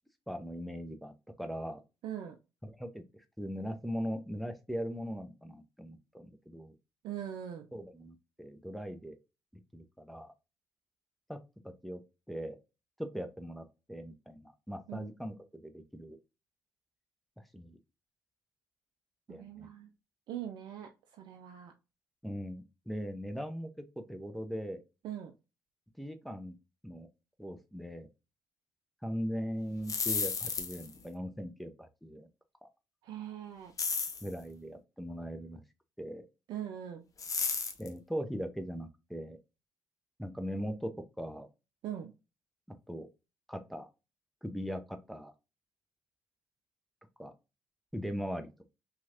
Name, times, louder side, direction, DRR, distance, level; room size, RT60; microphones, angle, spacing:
voice 1, 0.3-1.8 2.6-6.8 7.7-9.1 9.7-10.3 11.3-12.0 12.3-12.6 13.0-16.2 17.5-17.8 19.3-19.7 22.2-24.8 26.0-26.6 26.8-27.1 27.4-28.1 29.0-32.3 32.6-32.7 34.2-35.6 36.0-36.2 37.8-39.4 40.2-40.9 41.2-41.5 42.7-43.1 43.5-43.9 44.4-45.3 47.2-47.3 47.9-48.7, equal, ahead, 6 dB, 0.6 m, -40 dB
voice 2, 2.0-2.4 7.0-7.7 14.9-15.1 19.3-19.9 20.3-21.7 25.0-25.3 33.0-33.7 36.5-37.0 41.8-42.1, right 10 dB, 70° right, 5 dB, 0.4 m, -41 dB
sound 1, 29.7-31.0 33.8-34.3 37.2-37.9, left 5 dB, 45° left, 0.6 m, -33 dB
3.0 x 2.4 x 2.7 m, 0.27 s
hypercardioid pair, 50°, 8 cm